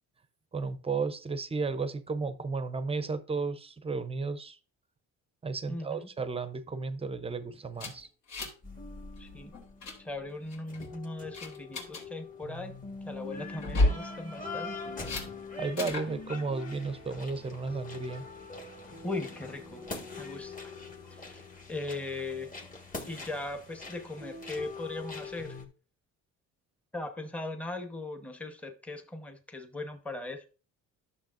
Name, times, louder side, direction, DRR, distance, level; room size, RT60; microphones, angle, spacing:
voice 1, 0.5-4.6 5.4-8.1 15.5-18.2, right 4 dB, 20° right, 0.5 m, -33 dB
voice 2, 5.7-6.1 9.2-9.5 10.0-12.8 13.0-14.8 18.8-19.8 20.2-20.7 21.1-22.5 23.1-25.6 26.9-30.5, left 2 dB, 5° left, 0.9 m, -39 dB
sound 1, 7.8-8.7 8.9-9.2 9.5-10.0 10.5-10.9 11.3-12.0 13.6-14.0 15.0-15.3 15.8-16.1, left 1 dB, 75° left, 2.9 m, -30 dB
sound 2, 8.6-25.6, left 3 dB, 25° left, 1.5 m, -43 dB
11.5 x 6.7 x 2.5 m
cardioid pair, 140°, 30 cm